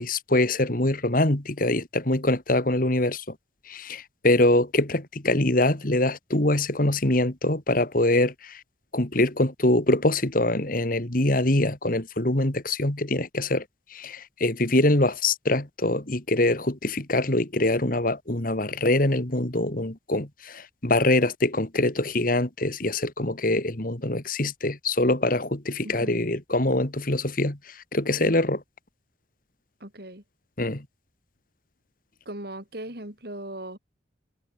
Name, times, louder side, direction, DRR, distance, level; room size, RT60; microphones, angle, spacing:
voice 1, 0.0-3.2 3.7-8.6 8.9-13.6 13.9-27.6 27.9-28.6 30.6-30.8, left 1 dB, 45° left, 2.3 m, -24 dB
voice 2, 25.8-26.2 29.8-30.2 32.3-33.8, right 1 dB, 55° right, 5.8 m, -38 dB
head